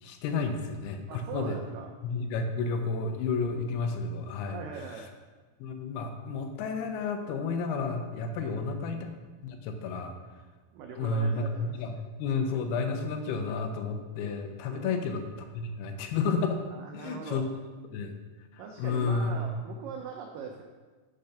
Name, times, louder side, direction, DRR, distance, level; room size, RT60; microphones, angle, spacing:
voice 1, 0.0-1.6 2.0-4.6 5.6-9.2 9.4-10.1 11.0-11.9 12.2-16.6 16.9-17.4 17.9-18.1 18.5-19.3, left 4 dB, 80° left, 6 dB, 2.6 m, -31 dB
voice 2, 1.1-1.9 4.5-5.1 8.4-8.6 10.7-11.7 14.7-15.0 16.7-17.5 18.6-20.6, right 6 dB, 85° right, 2 dB, 1.9 m, -41 dB
6.6 x 6.6 x 5.7 m, 1.4 s
omnidirectional pair, 4.7 m